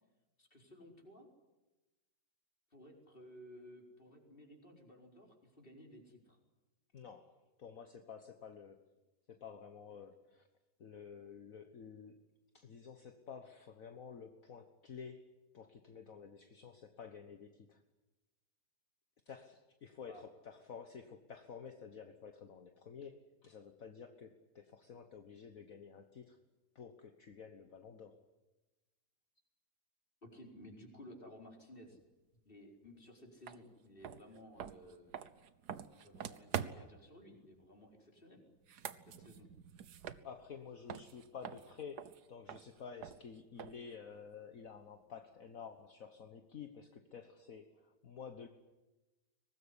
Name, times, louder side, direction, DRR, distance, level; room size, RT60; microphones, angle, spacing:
voice 1, 0.4-1.3 2.7-6.4 20.0-20.2 30.2-32.0 32.4-35.1 35.9-38.4 39.0-39.5, equal, 30° left, 1 dB, 4.8 m, -56 dB
voice 2, 6.9-8.9 9.3-10.5 10.8-12.2 12.5-17.8 19.3-26.4 26.7-28.2 40.2-48.5, left 6 dB, 55° left, 7 dB, 1.7 m, -51 dB
sound 1, 33.5-33.6 34.0-37.0 38.5-40.6 40.9-43.9, right 9 dB, 70° right, 1.6 m, -45 dB
23.5 x 19.5 x 9.9 m, 1.1 s
omnidirectional pair, 1.8 m